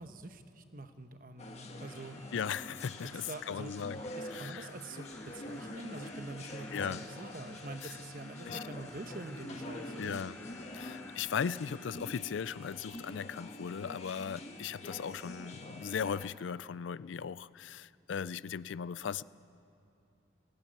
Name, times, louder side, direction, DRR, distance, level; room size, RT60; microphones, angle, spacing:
voice 1, 0.0-2.2 3.0-3.7 4.2-10.2, right 2 dB, 50° right, 8 dB, 1.0 m, -45 dB
sound 1, 1.4-16.3, left 1 dB, 35° left, 1.6 m, -46 dB
Crow, 1.9-11.9, left 2 dB, 10° left, 0.4 m, -57 dB
voice 2, 2.3-4.0 4.3-4.7 6.7-7.0 7.8-7.9 8.5-8.6 10.0-10.4 10.7-19.2, left 7 dB, 85° left, 19 dB, 0.4 m, -37 dB
17.5 x 17.0 x 9.4 m, 2.8 s
head